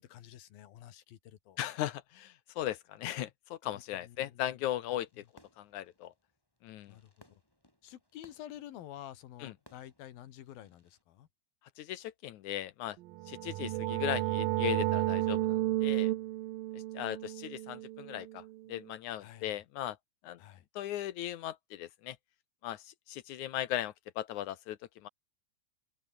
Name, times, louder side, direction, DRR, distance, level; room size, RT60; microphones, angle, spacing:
voice 1, 0.0-1.6 3.7-5.3 6.9-7.1 7.8-11.3 19.2-19.6 20.4-20.6, left 12 dB, 85° left, 3.4 m, -50 dB
voice 2, 1.6-5.2 5.6-6.1 6.6-6.9 9.4-9.5 11.8-13.0 13.3-16.1 16.7-18.4 18.7-20.0 20.2-20.4 20.8-22.2 22.6-25.1, left 13 dB, 70° left, 2.1 m, -38 dB
Fireworks, 5.0-11.0, left 1 dB, 5° left, 5.1 m, -65 dB
sound 1, 13.1-18.7, right 17 dB, 85° right, 2.6 m, -32 dB
open air
omnidirectional pair, 4.1 m